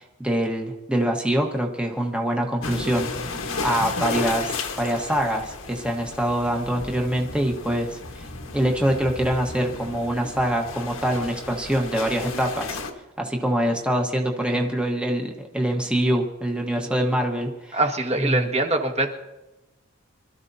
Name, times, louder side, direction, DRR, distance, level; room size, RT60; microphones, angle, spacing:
voice 1, 0.0-8.3 8.5-12.7 13.2-17.8 18.2-18.5, right 1 dB, 5° right, 1 dB, 1.2 m, -24 dB
sound 1, 2.6-12.9, left 3 dB, 85° left, 1.5 m, -33 dB
voice 2, 17.7-19.1, right 2 dB, 30° right, 3 dB, 1.6 m, -23 dB
26.0 x 13.5 x 2.7 m, 1.0 s
head